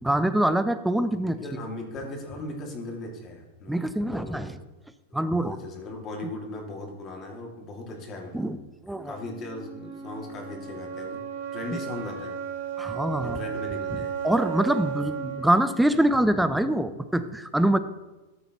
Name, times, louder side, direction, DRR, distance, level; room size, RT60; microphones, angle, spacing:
voice 1, 0.0-1.4 3.7-4.6 5.1-5.6 8.3-8.6 8.8-9.2 11.7-11.8 12.8-13.4 13.9-14.0 14.2-17.8, right 1 dB, 5° right, 12 dB, 0.6 m, -24 dB
voice 2, 1.1-4.4 5.1-8.5 9.0-11.2 11.5-12.4 13.2-14.1, left 2 dB, 35° left, 1 dB, 2.3 m, -38 dB
sound 1, 8.9-16.9, right 7 dB, 70° right, 3.4 m, -35 dB
13.5 x 7.1 x 3.0 m, 1.1 s
hypercardioid pair, 115°, 0 cm